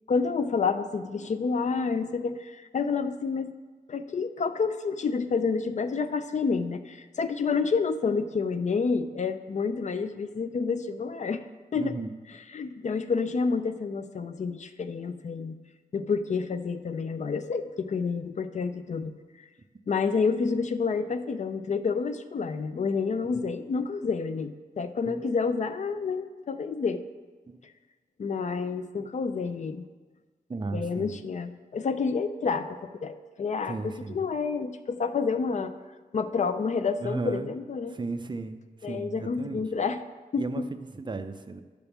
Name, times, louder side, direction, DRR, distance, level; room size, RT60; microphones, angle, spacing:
voice 1, 0.1-3.5 3.9-11.4 11.7-11.9 12.5-15.6 15.9-19.1 19.9-27.0 28.2-29.9 30.7-32.7 32.9-35.7 36.1-38.0 38.8-40.0 40.3-40.7, left 5 dB, 50° left, 10 dB, 0.5 m, -29 dB
voice 2, 11.7-12.1 23.3-23.4 25.1-25.2 27.5-27.6 30.5-31.2 33.7-34.2 37.0-37.5 37.9-39.7 40.4-41.6, right 3 dB, 30° right, 8 dB, 0.5 m, -35 dB
10.5 x 3.5 x 7.0 m, 1.4 s
wide cardioid pair, 130°, 15 cm